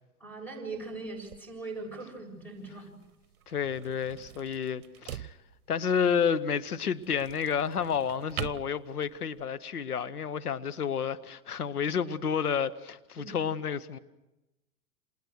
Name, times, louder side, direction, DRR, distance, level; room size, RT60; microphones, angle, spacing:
voice 1, 0.2-2.9 13.1-13.4, right 3 dB, 5° left, 7.7 m, -40 dB
sound 1, 0.7-9.5, right 11 dB, 70° right, 0.9 m, -45 dB
voice 2, 3.5-5.3 5.7-14.0, left 7 dB, 85° left, 1.2 m, -30 dB
29.0 x 27.0 x 6.5 m
hypercardioid pair, 105°, 44 cm